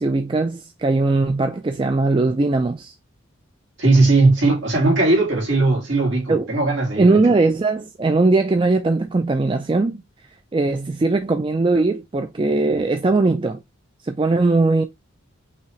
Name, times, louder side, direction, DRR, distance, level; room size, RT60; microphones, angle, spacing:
voice 1, 0.0-2.9 6.3-6.5 7.0-10.0 10.5-13.6 14.0-14.8, right 3 dB, 25° right, 0.3 m, -19 dB
voice 2, 3.8-7.2, right 2 dB, 60° right, 2.3 m, -18 dB
5.6 x 3.0 x 3.0 m
head